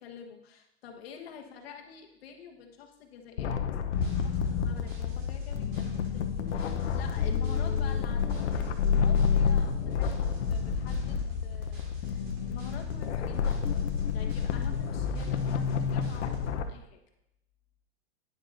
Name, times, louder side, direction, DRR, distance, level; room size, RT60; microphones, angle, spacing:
voice 1, 0.0-13.9 14.1-17.0, left 7 dB, 60° left, 2 dB, 1.4 m, -48 dB
sound 1, 3.4-16.6, left 6 dB, 80° left, 0.8 m, -29 dB
sound 2, 3.9-16.5, right 1 dB, 65° right, 3.7 m, -50 dB
11.0 x 9.6 x 2.6 m, 0.83 s
supercardioid pair, 165°, 34 cm